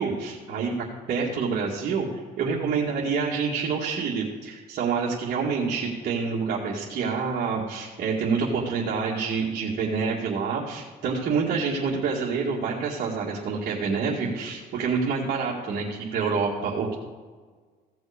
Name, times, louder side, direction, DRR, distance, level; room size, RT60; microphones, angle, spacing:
voice 1, 0.0-2.1 2.4-17.0, right 5 dB, 60° right, -6 dB, 2.1 m, -27 dB
16.0 x 6.2 x 5.0 m, 1.5 s
cardioid pair, 110°, 17 cm